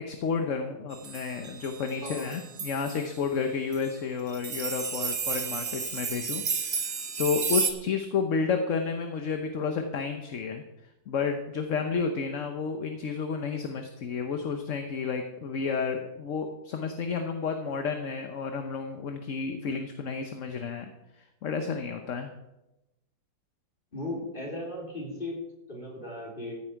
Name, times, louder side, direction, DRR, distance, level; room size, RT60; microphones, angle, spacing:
voice 1, 0.1-10.6 11.1-20.9 21.2-22.3, left 5 dB, 50° left, 5 dB, 1.2 m, -31 dB
sound 1, 0.9-3.1 3.7-3.9 4.3-7.7, right 5 dB, 40° right, 1.2 m, -32 dB
voice 2, 23.9-25.4 25.7-26.6, left 1 dB, 30° left, -2 dB, 3.8 m, -36 dB
14.5 x 9.5 x 4.7 m, 0.94 s
omnidirectional pair, 1.8 m